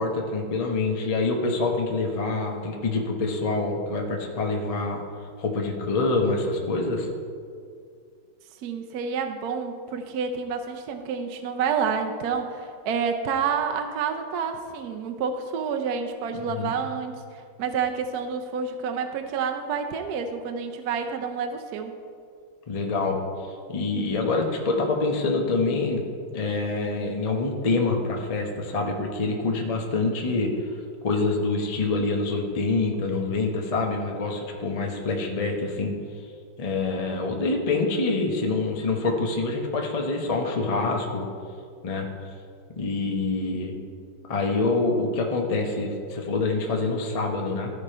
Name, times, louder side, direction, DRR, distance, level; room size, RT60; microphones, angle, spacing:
voice 1, 0.0-5.0 5.4-7.1 16.5-16.7 22.7-23.2 23.7-26.0 26.3-30.7 31.0-35.9 36.6-41.3 41.8-42.1 42.7-43.8 44.3-47.7, left 3 dB, 50° left, 1 dB, 0.4 m, -26 dB
voice 2, 8.6-21.9, right 6 dB, 70° right, 5 dB, 0.9 m, -29 dB
14.0 x 5.0 x 4.4 m, 2.3 s
omnidirectional pair, 2.2 m